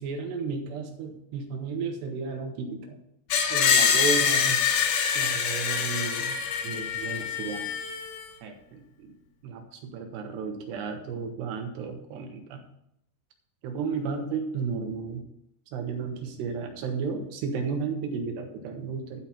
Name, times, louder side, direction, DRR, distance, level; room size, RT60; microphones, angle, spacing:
voice 1, 0.0-3.0 3.5-4.6 5.1-6.4 6.6-7.7 8.4-9.1 9.4-12.6 13.6-15.3 15.7-19.2, right 5 dB, 80° right, 4 dB, 3.4 m, -33 dB
Screech, 3.3-8.3, left 7 dB, 75° left, 2.7 m, -25 dB
12.0 x 4.4 x 7.0 m, 0.77 s
omnidirectional pair, 4.8 m